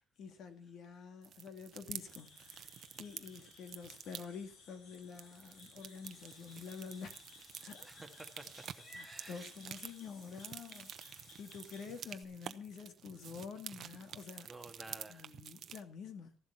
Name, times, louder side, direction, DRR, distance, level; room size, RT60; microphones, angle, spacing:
voice 1, 0.2-7.2 7.6-7.9 8.9-14.5 15.1-16.4, left 6 dB, 50° left, 2.1 m, -48 dB
sound 1, 1.2-4.2 4.9-15.8, right 9 dB, 45° right, 0.8 m, -50 dB
sound 2, 2.1-11.9, left 4 dB, 80° left, 3.9 m, -60 dB
Meow / Water / Bathtub (filling or washing), 6.0-12.2, right 1 dB, 15° left, 3.1 m, -60 dB
voice 2, 7.8-9.5 14.5-15.3, right 2 dB, 5° right, 1.7 m, -52 dB
14.0 x 11.5 x 5.7 m
cardioid pair, 160°, 0 cm